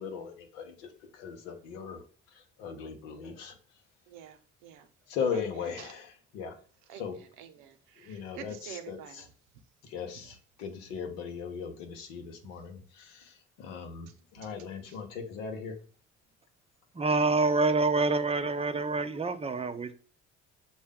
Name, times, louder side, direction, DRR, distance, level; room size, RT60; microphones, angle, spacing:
voice 1, 0.0-3.8 5.1-6.6 6.9-7.2 8.0-9.3 9.8-15.8, left 6 dB, 90° left, 0.8 m, -38 dB
voice 2, 4.1-4.9 5.3-5.4 5.8-5.9 6.9-7.1 7.4-9.2 14.4-14.5 14.9-15.0, right 10 dB, 80° right, 0.7 m, -47 dB
voice 3, 16.9-19.9, right 3 dB, 15° right, 0.5 m, -27 dB
6.2 x 2.2 x 3.5 m
hypercardioid pair, 55°, 37 cm